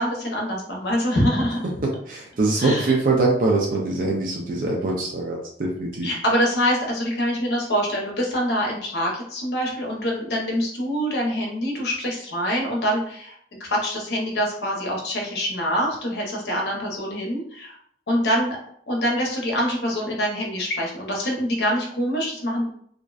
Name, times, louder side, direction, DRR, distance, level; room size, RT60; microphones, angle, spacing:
voice 1, 0.0-1.6 2.6-2.9 6.0-13.3 13.6-17.8 18.1-18.6 18.9-22.7, equal, 65° left, -1 dB, 0.7 m, -25 dB
voice 2, 1.8-6.1, right 3 dB, 50° right, -2 dB, 0.4 m, -23 dB
2.5 x 2.1 x 2.3 m, 0.64 s
head